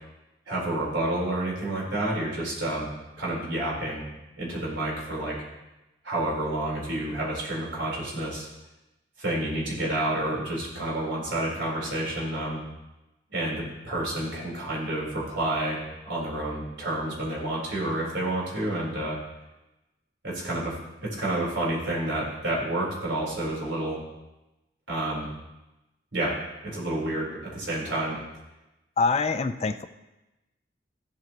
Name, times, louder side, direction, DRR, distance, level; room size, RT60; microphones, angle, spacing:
voice 1, 0.5-2.9 3.2-4.1 4.3-5.4 6.0-8.5 9.2-12.6 13.3-19.2 20.2-24.0 24.9-25.3 26.1-28.2, right 1 dB, 80° right, -5 dB, 4.0 m, -29 dB
voice 2, 29.0-29.8, left 4 dB, 35° left, 11 dB, 0.4 m, -25 dB
15.0 x 8.0 x 3.0 m, 1.0 s
head